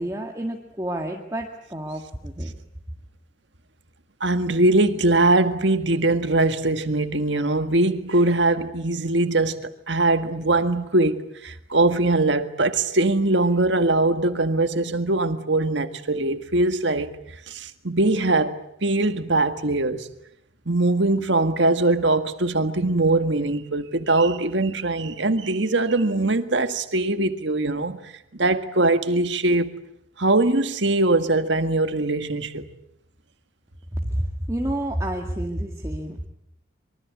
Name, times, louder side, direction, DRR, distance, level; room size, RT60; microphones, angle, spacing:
voice 1, 0.0-2.5 34.0-36.3, right 1 dB, 15° right, 1.9 m, -29 dB
voice 2, 4.2-17.1 17.5-20.1 20.7-29.7 30.2-32.7, right 2 dB, 65° right, 1.8 m, -22 dB
25.5 x 24.0 x 8.5 m
head